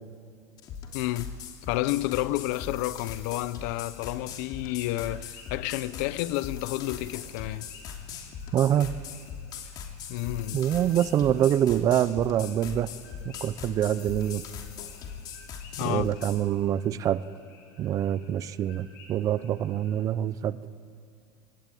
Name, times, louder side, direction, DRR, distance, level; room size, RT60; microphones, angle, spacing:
sound 1, 0.6-16.4, left 7 dB, 45° left, 2.9 m, -40 dB
voice 1, 0.9-1.3 1.7-7.7 10.1-10.6 15.8-16.1, left 17 dB, 65° left, 0.7 m, -30 dB
sound 2, 3.6-20.0, left 3 dB, 85° left, 5.1 m, -56 dB
voice 2, 8.5-8.9 10.5-12.9 13.2-14.4 15.8-17.2 17.8-20.7, right 11 dB, 35° right, 0.7 m, -25 dB
24.5 x 18.0 x 9.3 m
supercardioid pair, 135°, 10 cm